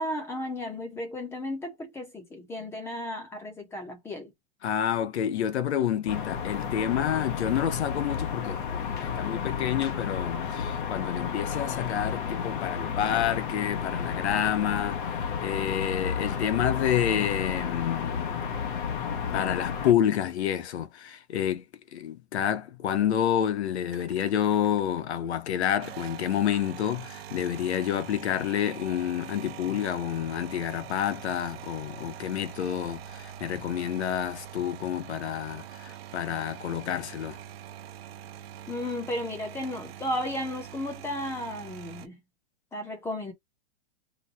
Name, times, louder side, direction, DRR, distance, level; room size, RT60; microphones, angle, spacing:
voice 1, 0.0-4.3 38.7-42.2 42.7-43.3, left 1 dB, 10° left, 0.9 m, -34 dB
voice 2, 4.6-18.3 18.6-18.8 19.3-21.6 21.9-37.4, left 10 dB, 85° left, 0.9 m, -29 dB
sound 1, 6.1-19.9, left 7 dB, 50° left, 1.0 m, -32 dB
sound 2, 23.9-25.0 25.7-42.1, right 10 dB, 65° right, 0.8 m, -44 dB
3.0 x 2.2 x 4.0 m
supercardioid pair, 160°, 32 cm